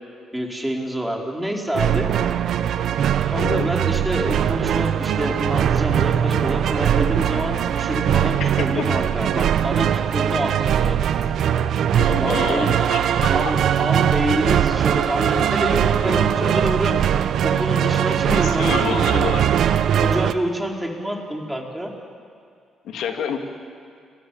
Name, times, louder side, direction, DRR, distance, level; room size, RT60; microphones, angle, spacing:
voice 1, 0.3-2.1 3.3-11.2 12.1-12.7 13.2-17.0 17.4-19.0 19.9-21.9, equal, 5° right, 0 dB, 4.8 m, -27 dB
sound 1, 1.7-20.3, right 9 dB, 70° right, 0.9 m, -20 dB
voice 2, 3.3-3.7 8.4-8.8 12.0-13.5 16.1-16.2 18.3-19.5 22.8-23.4, left 7 dB, 80° left, 4 dB, 2.8 m, -28 dB
30.0 x 20.5 x 8.9 m, 2.3 s
cardioid pair, 90°, 0 cm